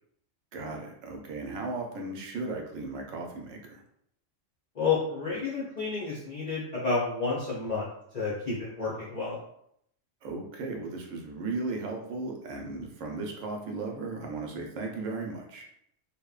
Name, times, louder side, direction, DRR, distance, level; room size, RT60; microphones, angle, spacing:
voice 1, 0.5-3.8 10.2-15.7, right 3 dB, 80° right, 1 dB, 0.9 m, -36 dB
voice 2, 4.8-7.8 8.1-9.4, left 4 dB, 55° left, -6 dB, 0.5 m, -30 dB
2.8 x 2.1 x 2.3 m, 0.72 s
omnidirectional pair, 1.3 m